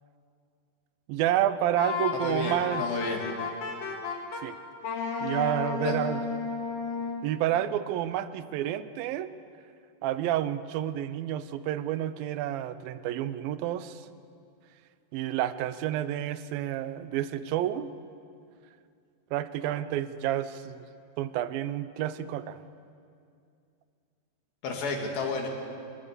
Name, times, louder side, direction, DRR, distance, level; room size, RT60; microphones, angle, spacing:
voice 1, 1.1-2.8 4.4-4.6 5.2-6.2 7.2-9.3 10.0-14.0 15.1-17.9 19.3-20.9 21.2-22.6, right 12 dB, 85° right, 14 dB, 2.5 m, -29 dB
Wind instrument woodwind instrument, 1.8-4.4 4.8-7.2, left 5 dB, 60° left, 3.4 m, -33 dB
voice 2, 2.1-3.2 5.8-6.0 24.6-25.5, left 4 dB, 80° left, 2 dB, 4.2 m, -31 dB
23.5 x 20.5 x 6.8 m, 2.4 s
omnidirectional pair, 4.1 m